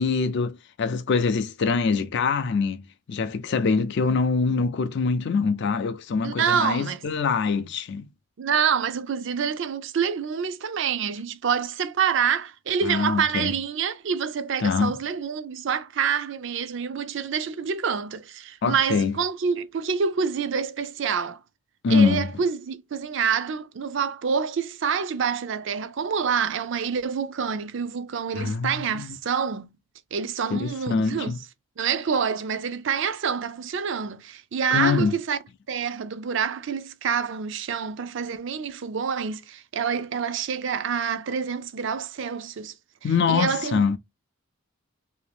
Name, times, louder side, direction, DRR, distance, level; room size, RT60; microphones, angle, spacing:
voice 1, 0.0-2.8 3.1-8.1 12.8-13.5 14.6-14.9 18.6-19.2 21.8-22.3 28.3-29.2 30.5-31.4 34.7-35.1 43.0-44.0, left 5 dB, 55° left, 0.4 m, -24 dB
voice 2, 6.2-7.0 8.4-21.4 21.9-29.7 30.1-31.3 31.8-35.4 35.7-42.7 43.3-44.0, right 6 dB, 55° right, 0.4 m, -27 dB
2.8 x 2.7 x 3.3 m
head